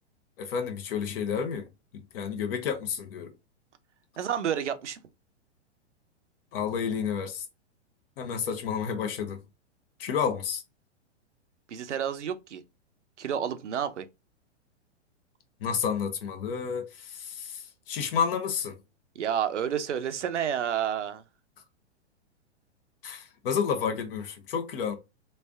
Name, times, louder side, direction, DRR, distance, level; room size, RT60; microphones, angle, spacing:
voice 1, 0.4-3.3 6.5-7.4 8.2-9.4 10.0-10.6 15.6-18.8 23.0-25.0, left 7 dB, 50° left, 1.0 m, -30 dB
voice 2, 4.2-5.0 11.7-12.6 13.2-14.1 19.2-21.2, right 9 dB, 80° right, 0.7 m, -30 dB
3.3 x 2.6 x 3.4 m
hypercardioid pair, 115°, 35 cm